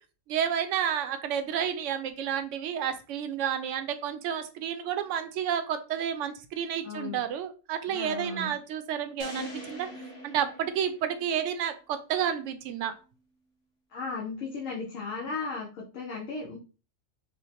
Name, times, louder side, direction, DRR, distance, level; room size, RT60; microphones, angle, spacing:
voice 1, 0.3-9.9 10.2-12.9, right 9 dB, 70° right, 8 dB, 0.9 m, -30 dB
voice 2, 6.8-7.2 7.9-8.5 13.9-16.6, left 4 dB, 75° left, -3 dB, 1.2 m, -36 dB
sound 1, 9.2-11.5, equal, 55° left, 1.3 m, -42 dB
4.9 x 2.1 x 2.8 m, 0.34 s
omnidirectional pair, 1.4 m